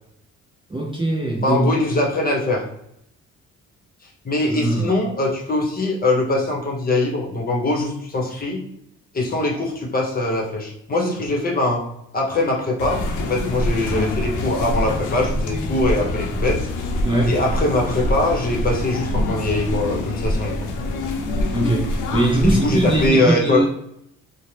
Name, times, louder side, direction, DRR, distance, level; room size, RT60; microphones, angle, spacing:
voice 1, 0.7-1.7 4.5-5.0 17.0-17.4 21.5-23.7, right 1 dB, 15° right, -2 dB, 0.6 m, -21 dB
voice 2, 1.4-2.6 4.2-8.6 9.1-11.8 12.1-16.6 17.3-20.5 22.4-23.7, left 2 dB, 30° left, -2 dB, 0.9 m, -22 dB
sound 1, 12.8-23.1, left 2 dB, 85° left, 0.6 m, -25 dB
2.6 x 2.1 x 3.2 m, 0.77 s
cardioid pair, 90°, 30 cm